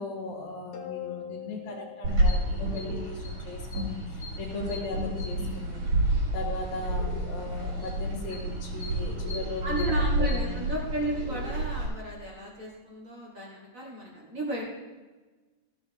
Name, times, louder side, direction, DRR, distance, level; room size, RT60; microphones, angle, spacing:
voice 1, 0.0-5.9 6.3-9.9 10.2-10.7, left 3 dB, 65° left, 0 dB, 2.9 m, -38 dB
sound 1, 0.7-3.3, left 11 dB, 90° left, 2.6 m, -42 dB
sound 2, 2.0-11.9, right 1 dB, 55° right, 4.1 m, -29 dB
voice 2, 9.6-14.7, right 1 dB, 40° right, -3 dB, 1.3 m, -34 dB
14.5 x 7.1 x 3.5 m, 1.3 s
omnidirectional pair, 3.6 m